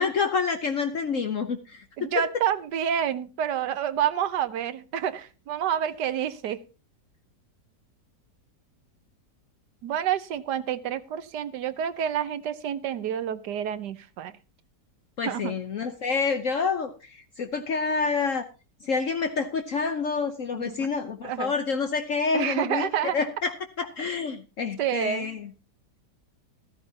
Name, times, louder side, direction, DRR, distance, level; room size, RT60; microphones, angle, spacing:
voice 1, 0.0-2.1 15.2-18.4 18.8-22.9 23.1-25.5, left 5 dB, 55° left, 7 dB, 1.2 m, -28 dB
voice 2, 2.0-6.6 9.8-14.3 15.2-15.5 20.5-20.9 21.2-21.5 22.3-23.2 24.8-25.3, right 9 dB, 80° right, 14 dB, 1.5 m, -28 dB
14.0 x 14.0 x 2.8 m, 0.32 s
omnidirectional pair, 1.8 m